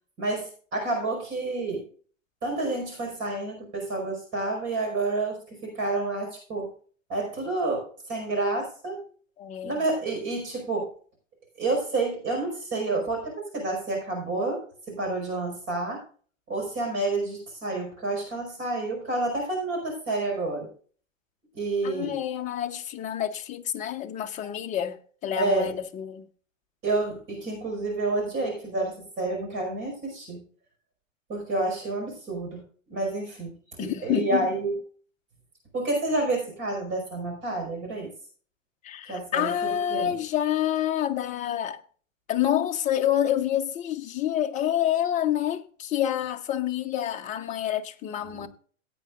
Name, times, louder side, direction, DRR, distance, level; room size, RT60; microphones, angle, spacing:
voice 1, 0.2-1.8 2.4-6.7 7.1-9.0 9.6-10.9 11.6-16.0 16.5-20.7 21.5-22.2 25.4-25.7 26.8-30.4 31.3-32.6 32.9-34.7 35.7-38.1 39.1-40.2 48.2-48.5, right 2 dB, 30° right, 5.2 m, -29 dB
voice 2, 9.4-9.8 21.8-26.3 33.8-34.5 38.8-41.8 42.3-48.5, left 11 dB, 20° left, 0.9 m, -28 dB
17.5 x 8.6 x 2.5 m
hypercardioid pair, 115°, 38 cm